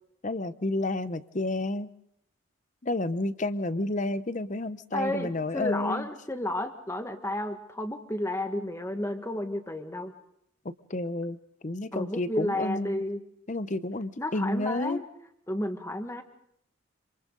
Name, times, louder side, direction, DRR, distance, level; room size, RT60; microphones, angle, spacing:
voice 1, 0.2-1.9 2.8-6.1 10.9-11.4 11.6-13.0 13.5-15.0, left 2 dB, 35° left, 14 dB, 0.7 m, -30 dB
voice 2, 4.9-10.1 11.9-13.2 14.2-15.0 15.5-16.2, left 1 dB, 15° left, 6 dB, 1.5 m, -32 dB
27.0 x 26.5 x 3.9 m, 0.70 s
head